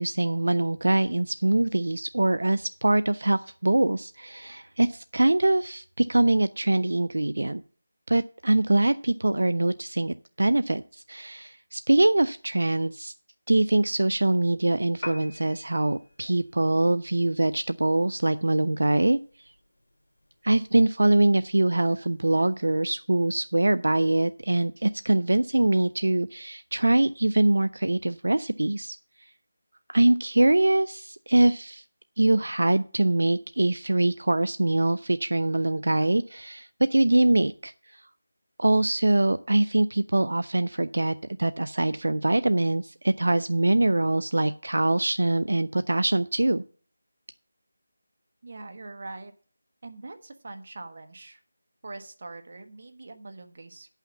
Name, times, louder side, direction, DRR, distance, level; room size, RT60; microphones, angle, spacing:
voice 1, 0.0-7.6 8.1-13.1 13.5-19.2 20.4-29.0 29.9-31.8 32.2-38.0 38.6-46.6, right 2 dB, 80° right, 13 dB, 0.4 m, -23 dB
Piano, 14.9-23.0, left 1 dB, 80° left, 1.9 m, -48 dB
voice 2, 48.4-49.3 49.8-51.4 51.8-53.9, right 2 dB, 50° right, 7 dB, 1.2 m, -42 dB
9.0 x 5.7 x 7.2 m, 0.42 s
figure-of-eight pair, 170°, 0 cm